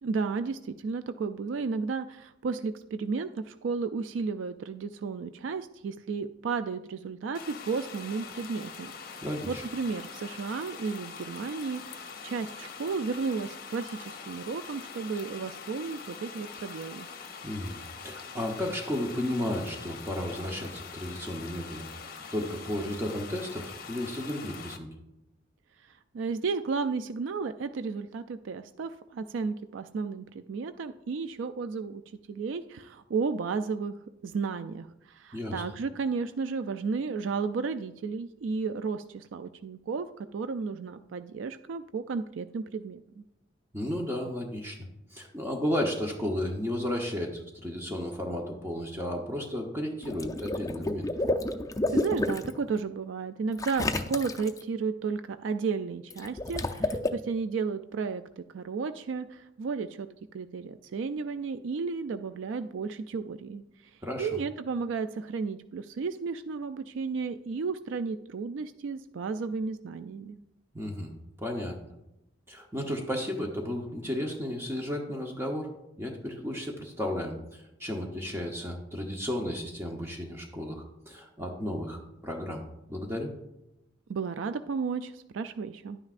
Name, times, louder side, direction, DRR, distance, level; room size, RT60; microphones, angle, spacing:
voice 1, 0.0-17.1 25.8-33.9 34.2-40.1 40.3-43.2 51.9-60.1 60.3-63.6 64.2-70.4 84.1-86.0, right 5 dB, 75° right, 11 dB, 0.3 m, -33 dB
sound 1, 7.3-24.8, left 5 dB, 50° left, 0.8 m, -44 dB
voice 2, 9.2-9.6 17.4-21.9 22.3-24.9 35.3-35.6 43.7-51.1 64.0-64.4 70.7-71.1 71.4-71.8 72.5-75.7 76.0-82.6 82.9-83.3, left 1 dB, 15° right, 1 dB, 0.8 m, -33 dB
Water / Liquid, 50.0-52.5 53.6-54.6 56.1-57.1, left 2 dB, 20° left, 0.5 m, -30 dB
11.0 x 9.6 x 2.5 m, 0.89 s
head